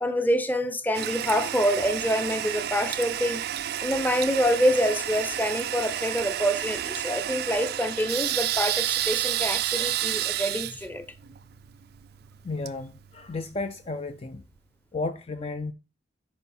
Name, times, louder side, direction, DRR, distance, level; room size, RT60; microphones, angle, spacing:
voice 1, 0.0-3.4 3.8-11.0, equal, 10° left, 0.7 m, -26 dB
Toilet flush, 0.9-13.6, right 12 dB, 55° right, 0.4 m, -31 dB
voice 2, 12.4-14.4 14.9-15.7, left 3 dB, 30° left, 0.4 m, -33 dB
9.6 x 5.4 x 4.2 m
head